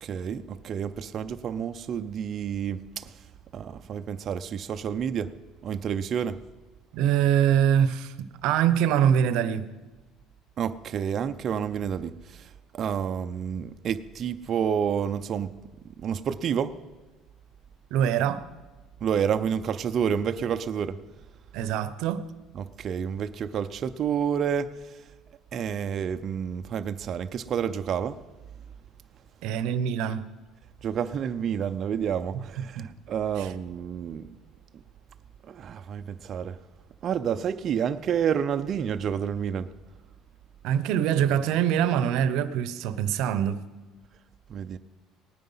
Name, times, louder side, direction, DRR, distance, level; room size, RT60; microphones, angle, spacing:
voice 1, 0.0-3.1 3.5-5.3 5.6-6.4 10.6-12.4 12.7-15.5 16.0-16.7 19.0-21.0 22.6-24.7 25.5-28.2 30.8-34.2 35.5-36.6 37.0-39.7 44.5-44.8, right 8 dB, 40° right, 0.5 m, -29 dB
voice 2, 6.9-9.7 17.9-18.4 21.5-22.2 29.4-30.3 32.8-32.9 33.4-33.5 40.6-43.6, right 9 dB, 70° right, 0.8 m, -24 dB
18.5 x 9.4 x 5.6 m
cardioid pair, 145°, 0 cm